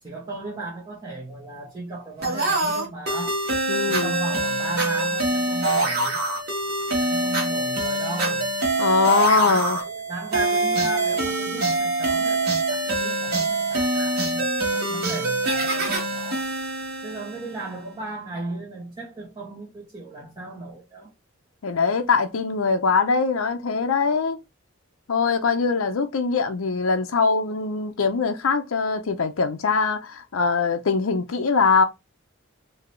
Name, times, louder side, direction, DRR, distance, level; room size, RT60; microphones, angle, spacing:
voice 1, 0.0-3.4 3.9-6.2 7.0-8.5 9.3-14.5 14.7-16.5 17.0-21.1, right 2 dB, 20° right, 1.1 m, -36 dB
sound 1, 2.2-17.7, right 2 dB, 50° right, 1.6 m, -25 dB
voice 2, 3.7-4.1 8.8-9.8 21.6-24.4 25.1-31.8, left 4 dB, 90° left, 0.6 m, -22 dB
3.7 x 2.8 x 3.2 m
head